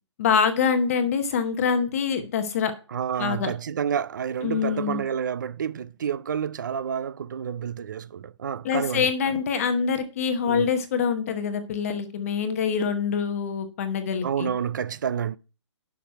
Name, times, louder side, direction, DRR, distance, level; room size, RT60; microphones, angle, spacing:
voice 1, 0.2-2.7 3.2-3.5 4.4-5.0 8.6-14.5, left 6 dB, 30° left, 0.9 m, -25 dB
voice 2, 2.9-9.1 10.5-10.7 14.2-15.4, right 8 dB, 40° right, 0.5 m, -29 dB
11.0 x 5.9 x 4.6 m
hypercardioid pair, 170°, 16 cm